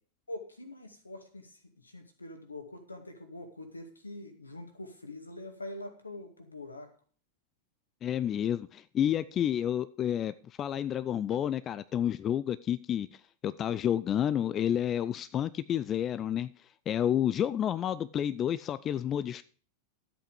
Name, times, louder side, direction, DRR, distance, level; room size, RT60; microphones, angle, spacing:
voice 1, 0.3-6.9, left 1 dB, 80° left, 6 dB, 2.1 m, -44 dB
voice 2, 8.0-13.2 13.4-16.5 16.9-19.4, left 10 dB, 30° left, 15 dB, 0.4 m, -30 dB
12.5 x 8.2 x 5.0 m, 0.42 s
figure-of-eight pair, 90°, 0 cm